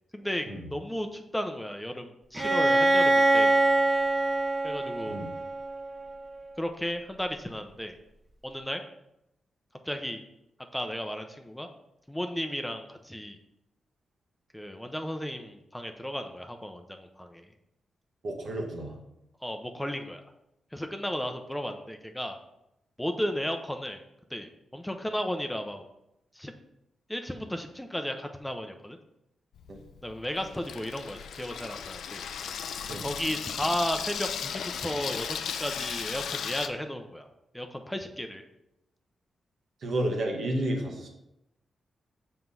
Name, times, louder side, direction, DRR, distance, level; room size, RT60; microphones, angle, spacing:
voice 1, 0.1-3.6 4.6-5.2 6.6-7.9 8.4-8.8 9.8-10.2 10.7-11.7 12.1-13.4 14.5-17.5 19.4-20.2 20.7-22.4 23.0-24.0 24.3-25.9 26.3-26.5 27.1-29.0 30.0-32.3 33.0-37.3 37.5-38.4, equal, 5° left, 5 dB, 0.7 m, -34 dB
Bowed string instrument, 2.3-6.1, right 2 dB, 25° right, 1.7 m, -24 dB
voice 2, 18.2-19.0 29.7-29.8 32.9-33.1 39.8-41.1, right 1 dB, 65° right, 1 dB, 1.6 m, -31 dB
Water tap faucet / Sink (filling or washing), 29.6-36.7, left 7 dB, 85° left, 0.5 m, -36 dB
5.9 x 4.6 x 5.5 m, 0.84 s
cardioid pair, 80°, 0 cm